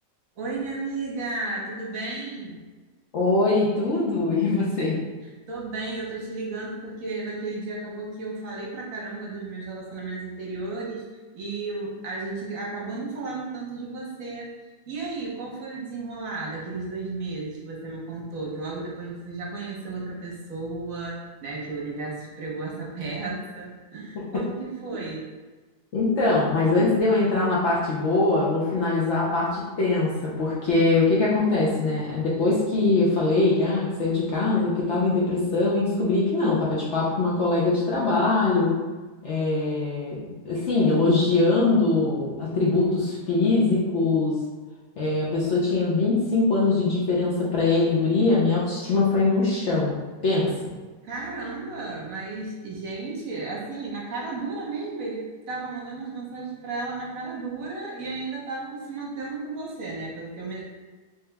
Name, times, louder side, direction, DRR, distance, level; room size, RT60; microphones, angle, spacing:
voice 1, 0.4-2.6 5.5-11.0 11.3-14.6 14.9-25.3 50.5-50.6 51.0-60.6, right 3 dB, 60° right, -3 dB, 1.1 m, -33 dB
voice 2, 3.1-5.0 24.3-24.4 25.9-38.7 39.2-44.3 45.0-50.0 50.2-50.5, left 3 dB, 60° left, -6 dB, 0.8 m, -22 dB
3.3 x 2.9 x 3.3 m, 1.3 s
omnidirectional pair, 1.7 m